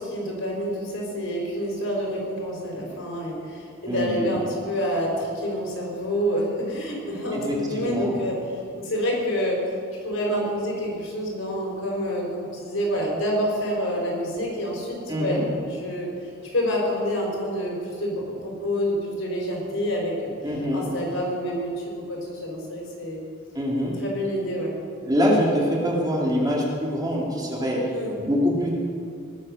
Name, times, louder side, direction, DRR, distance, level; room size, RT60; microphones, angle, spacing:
voice 1, 0.0-9.7 10.0-15.4 15.7-16.1 16.4-23.2 23.8-24.7 27.9-28.2, equal, 70° left, -1 dB, 4.8 m, -28 dB
voice 2, 3.9-4.4 7.3-8.2 15.1-15.5 20.4-20.9 23.5-23.9 25.0-27.8 28.2-28.7, equal, 20° right, -3 dB, 2.8 m, -24 dB
20.0 x 8.5 x 6.5 m, 2.4 s
head